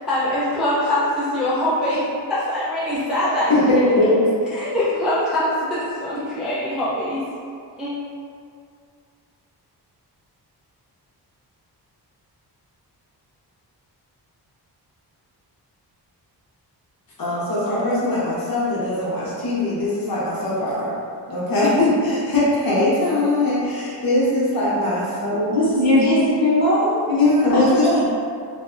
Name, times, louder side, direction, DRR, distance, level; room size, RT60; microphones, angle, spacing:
voice 1, 0.1-2.0 2.3-3.8 4.5-7.2 7.8-7.9, left 1 dB, ahead, -10 dB, 0.3 m, -23 dB
voice 2, 3.5-4.2 17.2-20.9 21.3-25.5 27.1-28.0, left 2 dB, 55° left, -8 dB, 0.7 m, -20 dB
voice 3, 25.5-27.0 27.5-27.9, left 1 dB, 40° left, -9 dB, 1.1 m, -19 dB
3.2 x 2.1 x 2.4 m, 2.3 s
wide cardioid pair, 160°, 41 cm